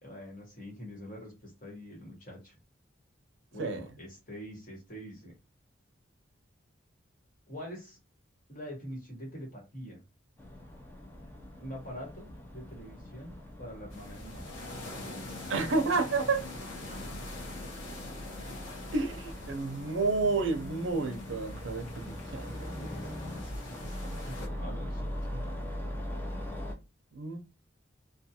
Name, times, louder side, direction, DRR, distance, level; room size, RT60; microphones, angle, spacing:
voice 1, 0.0-2.5 3.5-5.3 7.5-8.0 8.5-10.0 11.6-14.6 22.8-25.0, equal, 40° left, 1.2 m, -44 dB
sound 1, 10.4-26.7, equal, 10° left, 0.4 m, -41 dB
sound 2, 13.9-24.5, left 2 dB, 85° left, 0.8 m, -45 dB
voice 2, 15.5-16.4 18.9-22.8 27.1-27.4, right 3 dB, 75° right, 0.6 m, -30 dB
2.5 x 2.3 x 2.7 m
head